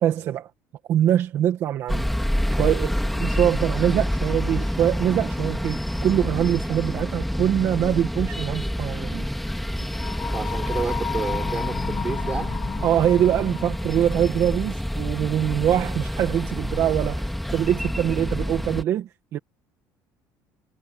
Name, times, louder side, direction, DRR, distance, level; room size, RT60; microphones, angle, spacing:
voice 1, 0.0-0.5 0.9-2.1 2.6-9.3 12.8-19.4, right 11 dB, 45° right, 1.6 m, -23 dB
sound 1, 1.9-18.8, equal, ahead, 2.4 m, -28 dB
sound 2, 9.9-13.9, left 8 dB, 30° left, 7.9 m, -33 dB
voice 2, 10.3-12.6, right 5 dB, 20° right, 4.0 m, -30 dB
cardioid pair, 175°, 7 cm